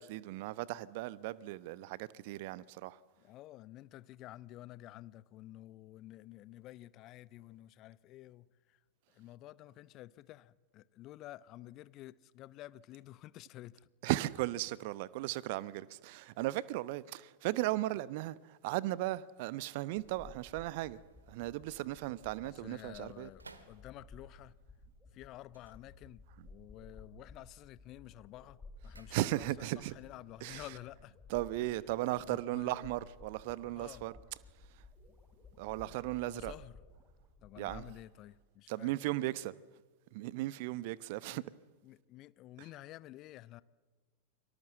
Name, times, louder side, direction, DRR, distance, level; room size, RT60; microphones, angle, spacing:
voice 1, 0.0-3.0 14.0-21.0 21.3-23.3 29.1-29.9 30.4-30.6 31.3-34.2 35.6-36.5 37.6-37.8 38.7-39.5 40.1-41.4, right 17 dB, 50° right, 0.9 m, -36 dB
voice 2, 3.2-8.8 9.1-13.9 22.4-24.6 25.1-28.6 28.8-31.2 32.3-32.9 33.6-34.1 36.3-36.8 37.4-38.9 41.3-41.4 41.8-43.6, left 15 dB, 35° left, 0.8 m, -51 dB
sound 1, 19.4-24.4 25.4-26.6 26.8-27.3 27.7-29.8 30.0-30.1, right 3 dB, 80° right, 2.1 m, -63 dB
sound 2, 20.0-37.9, left 3 dB, 15° left, 3.5 m, -56 dB
29.0 x 24.0 x 7.6 m
figure-of-eight pair, 90°, 0 cm